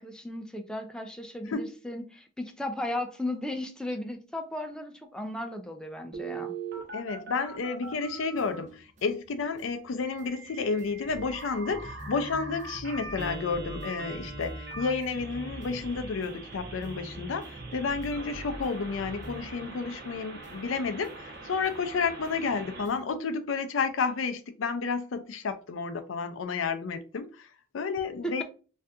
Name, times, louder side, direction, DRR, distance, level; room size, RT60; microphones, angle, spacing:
voice 1, 0.0-6.5 28.2-28.4, left 1 dB, 5° left, 0.4 m, -35 dB
Telephone, 6.1-8.6 10.0-22.9, right 3 dB, 55° right, 1.0 m, -42 dB
voice 2, 6.9-27.5 27.7-28.4, left 4 dB, 85° left, 0.5 m, -31 dB
sound 1, 7.9-20.1 20.4-23.2, equal, 40° right, 0.6 m, -46 dB
2.6 x 2.4 x 3.4 m
head